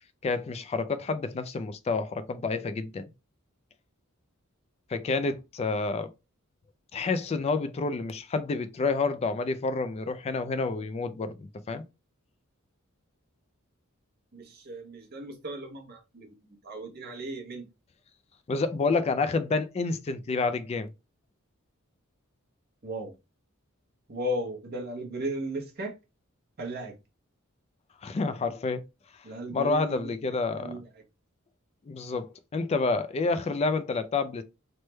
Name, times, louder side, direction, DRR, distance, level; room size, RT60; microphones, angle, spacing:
voice 1, 0.2-3.1 4.9-6.1 6.9-11.8 18.5-20.9 28.0-28.8 29.5-30.8 31.9-34.4, left 3 dB, 30° left, 0.3 m, -29 dB
voice 2, 14.3-16.3 16.6-17.6 22.8-23.1 24.1-25.9 26.6-26.9 29.2-30.1 30.6-30.9, equal, 50° right, 0.8 m, -35 dB
3.1 x 2.1 x 3.1 m
head